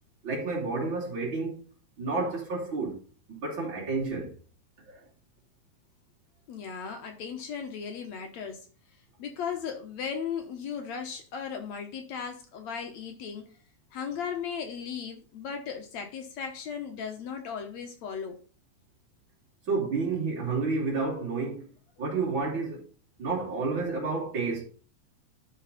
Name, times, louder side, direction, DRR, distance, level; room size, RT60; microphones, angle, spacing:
voice 1, 0.2-1.6 2.0-3.0 3.3-4.3 4.9-5.0 19.7-21.7 22.0-22.8 23.2-24.6, right 4 dB, 40° right, 3.6 m, -30 dB
voice 2, 6.5-8.7 9.2-13.6 13.9-18.4 23.3-23.4, left 7 dB, 70° left, 2.3 m, -36 dB
12.0 x 4.7 x 4.1 m
omnidirectional pair, 3.5 m